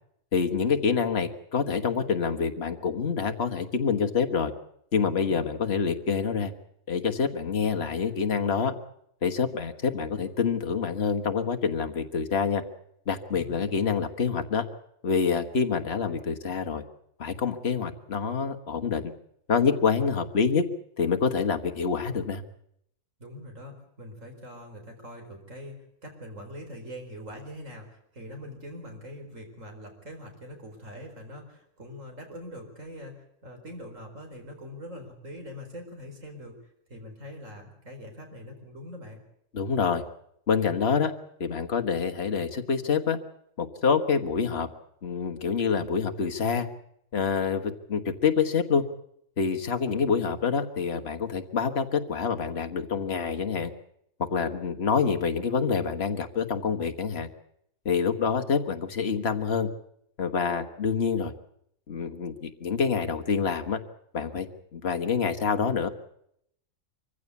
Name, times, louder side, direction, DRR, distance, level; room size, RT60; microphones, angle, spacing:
voice 1, 0.3-4.5 4.9-6.5 6.9-8.7 9.2-12.6 13.1-14.6 15.0-16.8 17.2-19.0 19.5-20.6 21.0-22.4 39.5-40.0 40.5-41.1 41.4-43.2 43.6-44.7 45.0-46.7 47.1-48.9 49.4-53.7 54.3-57.3 57.9-59.7 60.2-61.3 61.9-63.8 64.1-64.5 64.7-65.9, left 6 dB, 45° left, 7 dB, 1.7 m, -26 dB
voice 2, 5.2-5.5 13.3-14.0 23.2-36.6 36.9-39.2, equal, 60° right, 4 dB, 4.9 m, -43 dB
24.0 x 15.5 x 8.4 m, 0.73 s
omnidirectional pair, 1.5 m